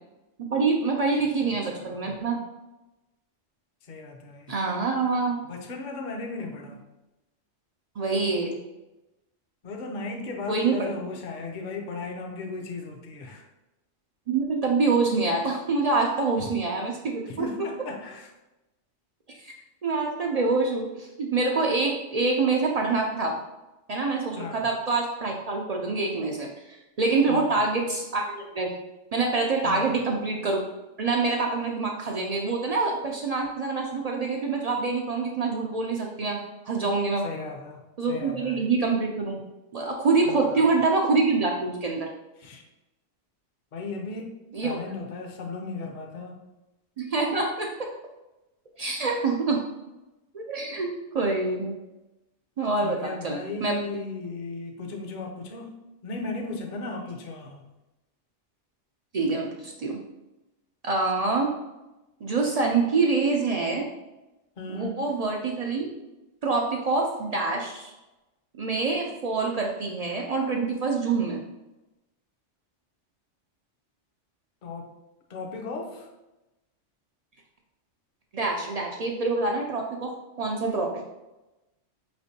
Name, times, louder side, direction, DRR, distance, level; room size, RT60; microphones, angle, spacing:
voice 1, 0.4-2.4 4.5-5.4 8.0-8.6 10.5-10.9 14.3-17.5 19.4-19.5 19.8-23.4 23.9-28.7 29.1-30.6 31.0-37.3 38.0-39.4 39.7-42.1 44.5-44.8 47.0-47.9 48.8-49.7 50.3-51.8 52.6-53.8 59.1-60.0 60.8-61.6 62.2-63.9 64.7-65.9 66.4-67.9 68.6-71.4 78.3-80.9, right 3 dB, 65° right, 0 dB, 0.3 m, -26 dB
voice 2, 1.4-2.1 3.8-4.5 5.4-6.8 9.6-13.4 16.4-16.5 17.3-18.3 24.4-24.7 27.3-27.6 29.6-30.0 37.2-38.7 40.2-40.7 42.4-42.6 43.7-44.4 44.6-46.4 52.8-55.8 56.0-57.7 64.6-65.0 74.6-74.9 75.3-76.1, left 3 dB, 50° left, 2 dB, 0.7 m, -36 dB
5.0 x 3.2 x 2.7 m, 1.0 s
omnidirectional pair, 1.2 m